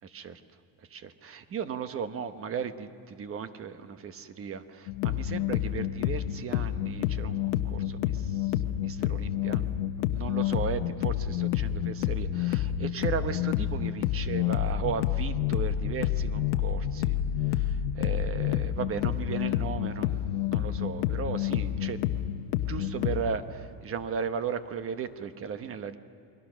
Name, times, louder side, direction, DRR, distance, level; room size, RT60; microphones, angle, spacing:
voice 1, 0.0-0.4 0.9-8.5 8.8-9.7 10.1-17.2 17.5-22.0 22.7-26.0, right 7 dB, 30° right, 10 dB, 1.1 m, -36 dB
sound 1, 4.9-23.2, left 11 dB, 90° left, 1.1 m, -29 dB
29.0 x 22.5 x 6.3 m, 2.6 s
cardioid pair, 150°, 44 cm